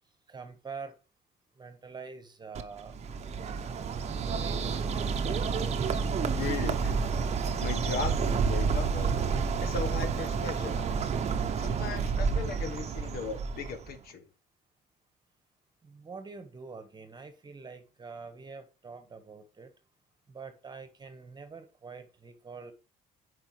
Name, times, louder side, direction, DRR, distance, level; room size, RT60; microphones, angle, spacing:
voice 1, 0.3-0.9 1.6-2.9 4.1-4.8 15.8-19.7 20.3-22.7, right 4 dB, 25° right, 1.4 m, -45 dB
Bird, 2.5-14.0, right 5 dB, 40° right, 0.9 m, -30 dB
voice 2, 6.3-7.0 7.6-9.1 9.6-11.1 11.6-14.2, left 5 dB, 65° left, 1.2 m, -37 dB
8.0 x 5.2 x 3.3 m
cardioid pair, 110°, 17 cm